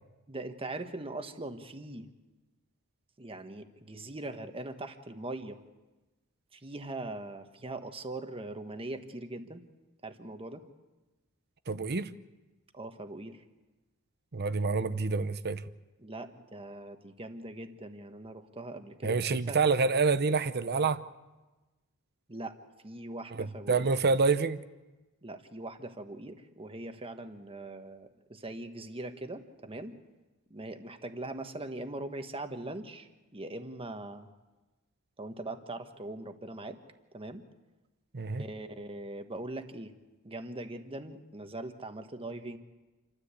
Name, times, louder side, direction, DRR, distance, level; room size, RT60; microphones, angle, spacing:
voice 1, 0.3-2.1 3.2-5.6 6.5-9.6 10.0-10.6 12.7-13.4 16.0-19.6 22.3-22.6 22.8-23.9 25.2-30.0 30.5-34.3 35.2-36.8 37.1-37.4 38.4-39.9 40.2-42.6, right 2 dB, 25° right, 1.4 m, -41 dB
voice 2, 11.7-12.1 14.3-15.6 19.0-21.0 23.3-24.6 38.1-38.4, right 4 dB, 45° right, 0.8 m, -27 dB
28.0 x 13.0 x 8.3 m
head